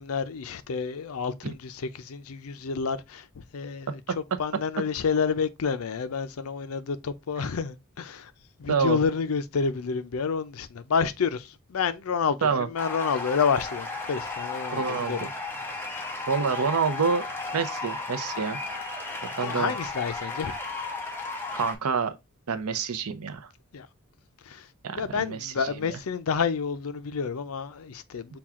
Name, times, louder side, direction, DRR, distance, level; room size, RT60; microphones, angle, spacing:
voice 1, 0.0-4.0 4.4-8.3 8.6-15.3 19.4-20.5 23.7-23.9 24.5-28.4, left 5 dB, 75° left, 0.5 m, -29 dB
voice 2, 8.7-9.0 12.4-12.7 14.7-15.3 16.3-17.2 17.5-18.6 19.2-19.7 21.5-22.2 22.5-23.5 24.8-26.0, right 5 dB, 85° right, 0.6 m, -27 dB
sound 1, 12.8-21.8, left 3 dB, 10° left, 0.8 m, -34 dB
5.9 x 2.3 x 3.6 m
head